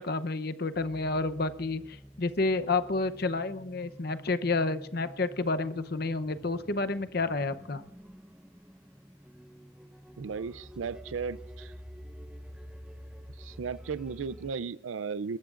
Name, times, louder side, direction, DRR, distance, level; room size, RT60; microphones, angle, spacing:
voice 1, 0.0-7.8, left 3 dB, 50° left, 11 dB, 0.8 m, -30 dB
sound 1, 0.7-14.5, equal, 5° right, 0.6 m, -49 dB
voice 2, 10.2-11.7 13.4-15.4, right 5 dB, 80° right, 17 dB, 0.4 m, -35 dB
22.5 x 20.5 x 2.5 m, 0.80 s
head